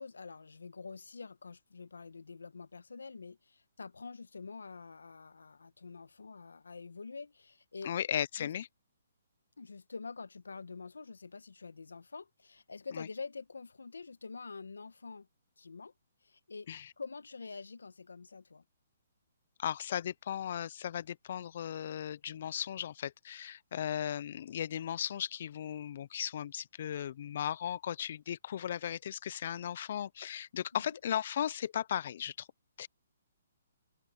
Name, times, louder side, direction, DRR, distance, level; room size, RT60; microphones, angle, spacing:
voice 1, 0.0-7.9 8.4-8.5 9.6-15.3 15.6-15.9 16.2-18.6 30.7-31.0, left 4 dB, 85° left, 1.5 m, -46 dB
voice 2, 7.8-8.7 12.9-13.1 16.7-16.9 19.6-32.5 32.8-32.9, left 9 dB, 55° left, 0.7 m, -36 dB
open air
hypercardioid pair, 140°, 0 cm